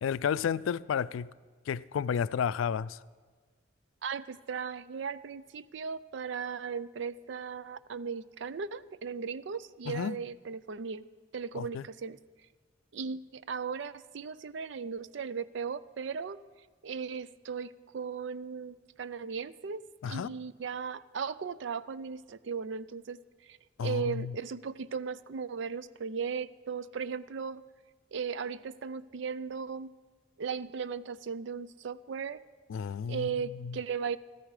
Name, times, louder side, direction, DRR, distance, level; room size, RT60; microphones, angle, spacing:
voice 1, 0.0-1.3 1.7-3.0 9.9-10.2 11.5-11.8 20.0-20.3 23.8-24.4 32.7-33.8, left 7 dB, 85° left, 0.3 m, -32 dB
voice 2, 4.0-11.0 11.3-12.2 12.9-16.4 16.8-19.8 20.1-27.6 28.1-29.9 30.4-32.4 33.1-34.2, right 6 dB, 70° right, 0.4 m, -37 dB
14.0 x 14.0 x 4.9 m
head